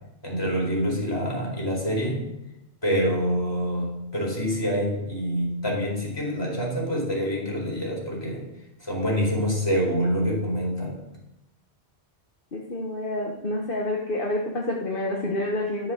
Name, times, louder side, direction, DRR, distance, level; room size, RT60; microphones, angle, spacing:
voice 1, 0.2-2.2 2.8-8.4 8.8-10.9, equal, 20° left, -3 dB, 4.7 m, -26 dB
voice 2, 12.5-15.9, left 1 dB, 55° left, 0 dB, 1.5 m, -28 dB
12.5 x 7.1 x 6.5 m, 0.90 s
omnidirectional pair, 1.1 m